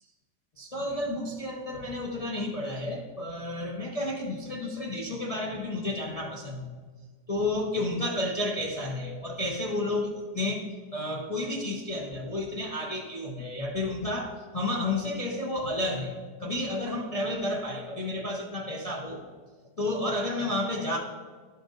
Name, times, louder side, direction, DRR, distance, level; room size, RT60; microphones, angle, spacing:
voice 1, 0.6-6.7 7.3-19.2 19.8-21.0, left 1 dB, 45° left, -1 dB, 0.4 m, -31 dB
11.5 x 5.8 x 3.8 m, 1.5 s
omnidirectional pair, 1.9 m